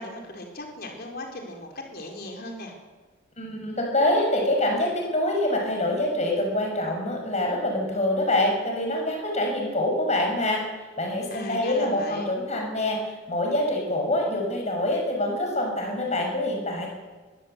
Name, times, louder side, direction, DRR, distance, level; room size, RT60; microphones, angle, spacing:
voice 1, 0.0-2.7 11.3-12.3, left 1 dB, 50° left, 2 dB, 4.3 m, -37 dB
voice 2, 3.4-10.6 11.0-13.0 13.3-16.9, left 1 dB, 35° left, 1 dB, 6.7 m, -25 dB
22.0 x 16.0 x 8.1 m, 1.3 s
head